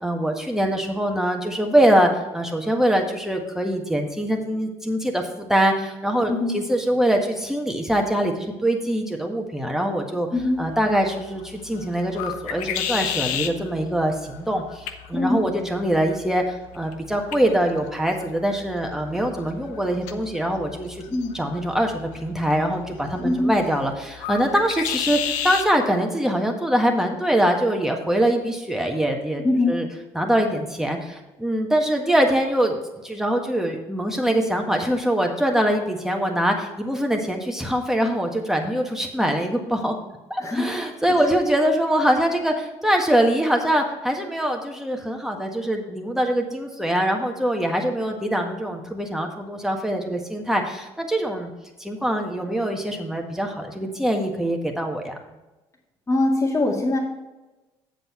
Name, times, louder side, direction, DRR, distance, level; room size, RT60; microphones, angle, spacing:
voice 1, 0.0-10.3 10.6-21.0 21.3-29.9 30.1-32.7 33.0-40.0 40.3-51.5 51.8-55.2, right 1 dB, 5° right, 2 dB, 1.6 m, -23 dB
voice 2, 10.3-10.6 15.1-15.4 21.1-21.4 23.2-23.5 29.4-29.7 40.4-40.7 41.1-41.3 56.1-57.0, left 2 dB, 25° left, -3 dB, 2.0 m, -22 dB
sound 1, 10.4-25.7, left 9 dB, 70° left, 0.7 m, -34 dB
7.7 x 7.7 x 4.4 m, 1.1 s
hypercardioid pair, 55°, 13 cm